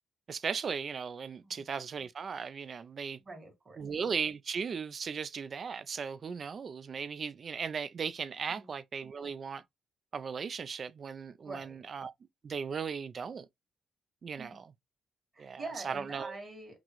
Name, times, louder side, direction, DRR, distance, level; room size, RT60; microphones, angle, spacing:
voice 1, 0.3-3.2 3.8-9.6 10.1-12.1 12.4-13.5 14.2-14.6 15.4-16.4, right 6 dB, 45° right, 0.4 m, -37 dB
voice 2, 3.2-3.8 8.5-8.7 11.4-11.8 14.4-14.6 15.3-16.8, right 3 dB, 30° right, 2.0 m, -45 dB
5.9 x 2.1 x 3.0 m
cardioid pair, 100°, 0 cm